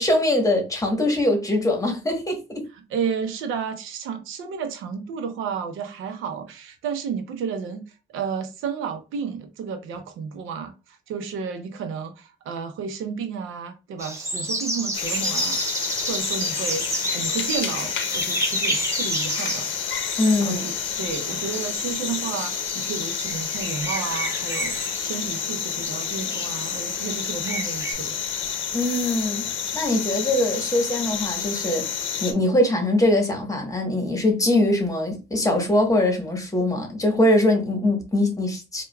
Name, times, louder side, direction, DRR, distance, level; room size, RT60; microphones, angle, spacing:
voice 1, 0.0-2.6 20.2-20.6 28.7-29.5 29.7-38.8, left 1 dB, 15° left, 1.1 m, -22 dB
voice 2, 2.7-7.9 8.1-15.6 16.0-19.7 20.4-28.2, right 6 dB, 90° right, 0.6 m, -32 dB
sound 1, 14.0-27.9, right 1 dB, 15° right, 0.9 m, -31 dB
sound 2, 14.9-32.3, left 8 dB, 70° left, 0.6 m, -29 dB
4.6 x 2.3 x 2.2 m
cardioid pair, 90°, 20 cm